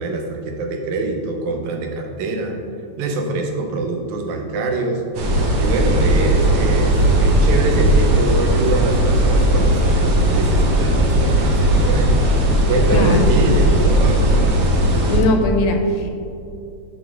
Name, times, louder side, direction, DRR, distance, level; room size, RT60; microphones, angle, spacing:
voice 1, 0.0-2.6 3.0-5.3 5.6-12.3 12.7-14.3, right 2 dB, 80° right, 3 dB, 2.2 m, -24 dB
sound 1, 5.1-15.2, right 1 dB, 65° right, 1.7 m, -16 dB
voice 2, 12.9-13.4 15.1-16.1, left 2 dB, 80° left, 4 dB, 2.0 m, -19 dB
10.5 x 4.2 x 3.5 m, 2.5 s
omnidirectional pair, 3.4 m